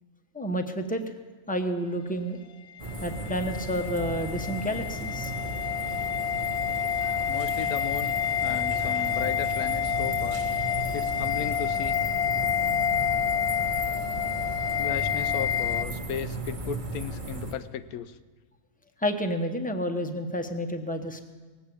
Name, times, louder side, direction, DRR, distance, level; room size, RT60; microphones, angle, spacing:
voice 1, 0.3-1.0 1.5-2.4 3.0-5.3 19.0-21.2, equal, 5° left, 5 dB, 0.8 m, -30 dB
sound 1, 2.8-15.8, left 8 dB, 60° left, 0.7 m, -28 dB
sound 2, 2.8-17.5, right 2 dB, 35° right, 1.3 m, -36 dB
voice 2, 7.3-8.1 8.4-10.4 10.9-12.0 14.8-18.2, left 9 dB, 85° left, 13 dB, 1.1 m, -35 dB
18.5 x 8.5 x 8.4 m, 1.4 s
omnidirectional pair, 1.5 m